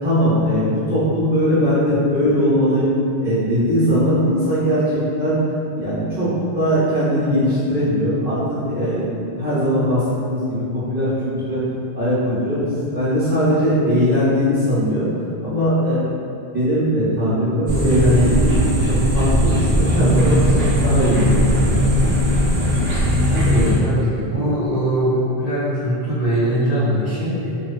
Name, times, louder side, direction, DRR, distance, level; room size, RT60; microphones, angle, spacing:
voice 1, 0.0-2.9 3.2-5.4 5.7-11.6 11.9-12.6 12.9-15.1 15.4-16.1 16.5-18.5 18.9-22.2 23.5-24.2, equal, 10° right, -13 dB, 0.8 m, -20 dB
sound 1, 17.7-23.7, equal, 70° right, 0.8 m, -18 dB
voice 2, 23.3-25.1 25.4-27.5, equal, 45° right, -14 dB, 0.9 m, -21 dB
2.5 x 2.3 x 2.2 m, 2.7 s
omnidirectional pair, 1.0 m